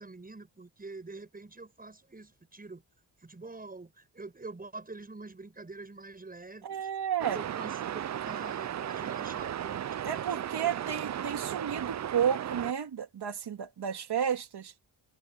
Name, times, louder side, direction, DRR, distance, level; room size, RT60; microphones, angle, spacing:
voice 1, 0.0-2.8 3.2-6.9 7.2-11.0, right 3 dB, 20° right, 7.1 m, -46 dB
voice 2, 6.6-7.4 10.0-14.7, right 8 dB, 65° right, 3.1 m, -32 dB
sound 1, 7.2-12.7, right 10 dB, 40° right, 0.5 m, -35 dB
wide cardioid pair, 155°, 42 cm